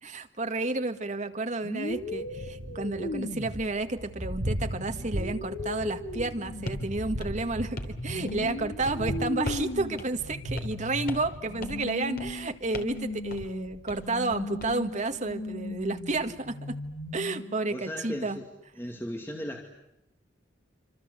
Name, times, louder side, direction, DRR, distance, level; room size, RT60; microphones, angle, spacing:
voice 1, 0.0-16.7 17.1-18.4, right 2 dB, 40° right, 7 dB, 1.8 m, -31 dB
sound 1, 1.6-17.8, left 1 dB, 70° left, 2.8 m, -38 dB
Thunder, 1.9-17.2, equal, 85° right, 5.1 m, -40 dB
sound 2, 6.7-6.9 7.2-8.0 8.3-8.6 8.8-9.0 9.5-9.7 10.0-10.1 10.6-10.8 11.1-11.3 11.6-11.9 12.2-12.4 12.7-13.0 13.3-13.5 13.9-14.7, left 1 dB, 50° left, 3.2 m, -39 dB
voice 2, 17.7-18.4 18.8-19.6, equal, 10° left, 2 dB, 2.4 m, -36 dB
27.0 x 26.0 x 8.2 m, 0.88 s
head